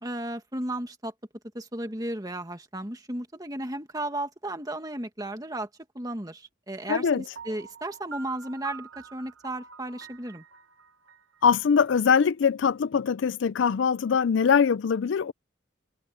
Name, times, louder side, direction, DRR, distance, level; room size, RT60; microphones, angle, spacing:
voice 1, 0.0-1.1 1.5-5.7 6.0-10.4, right 1 dB, 20° right, 1.7 m, -34 dB
voice 2, 6.9-7.2 11.4-15.3, left 6 dB, 65° left, 0.4 m, -22 dB
Piano, 7.4-12.2, right 6 dB, 80° right, 1.0 m, -46 dB
head